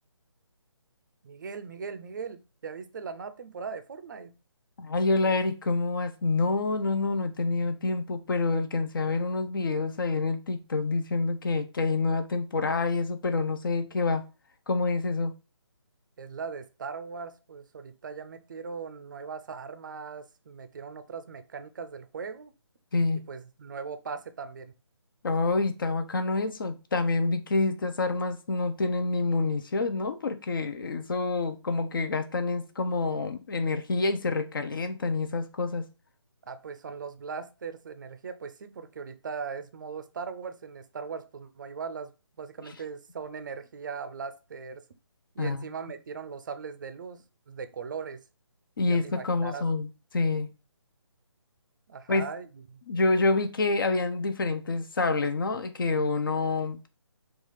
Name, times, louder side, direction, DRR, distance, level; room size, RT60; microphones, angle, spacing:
voice 1, 1.2-4.3 16.2-22.5 23.1-24.7 36.5-44.8 45.3-48.2 48.8-49.6 51.9-52.8, right 5 dB, 45° right, 0.4 m, -39 dB
voice 2, 4.8-14.2 14.7-15.3 22.9-23.2 25.2-35.8 45.4-45.6 48.8-49.9 50.1-50.5 52.1-52.3 52.9-56.9, left 3 dB, 50° left, 0.5 m, -27 dB
4.0 x 2.4 x 3.0 m
figure-of-eight pair, 155°, 15 cm